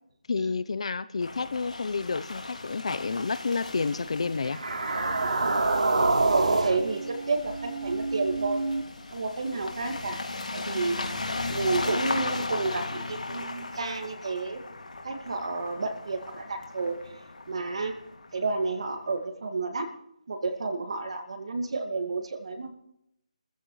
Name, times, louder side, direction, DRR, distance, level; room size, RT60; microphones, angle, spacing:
voice 1, 0.3-4.6, left 4 dB, 55° left, 15 dB, 0.8 m, -30 dB
sound 1, 1.2-18.8, left 2 dB, 90° left, 2.6 m, -37 dB
sound 2, 4.4-8.8, right 3 dB, 80° right, 3.6 m, -27 dB
voice 2, 5.2-5.7 6.2-8.6 9.1-10.2 10.5-11.0 11.5-14.6 15.0-17.0 17.5-17.9 18.3-19.9 20.3-22.7, right 3 dB, 55° right, 6 dB, 2.2 m, -31 dB
27.5 x 14.5 x 3.3 m, 0.79 s
hypercardioid pair, 170°, 4 cm